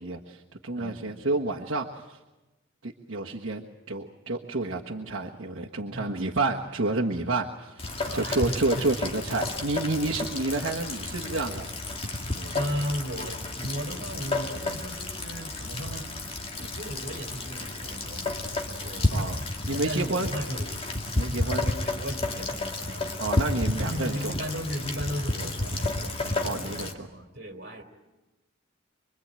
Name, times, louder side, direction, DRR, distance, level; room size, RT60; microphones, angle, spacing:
voice 1, 0.0-2.2 2.8-3.6 3.9-11.7 12.3-12.5 16.6-16.7 19.1-20.3 21.1-21.6 23.2-24.3 26.4-27.1, right 2 dB, 70° right, -2 dB, 1.5 m, -30 dB
voice 2, 0.7-1.3 5.9-6.4 8.1-8.9 9.9-10.1 12.2-16.1 16.7-19.3 19.7-20.8 21.5-23.1 23.8-27.8, equal, 55° right, 5 dB, 3.4 m, -36 dB
Rain, 7.8-26.9, left 2 dB, 30° left, 2.2 m, -31 dB
25.0 x 24.0 x 8.9 m, 1.1 s
head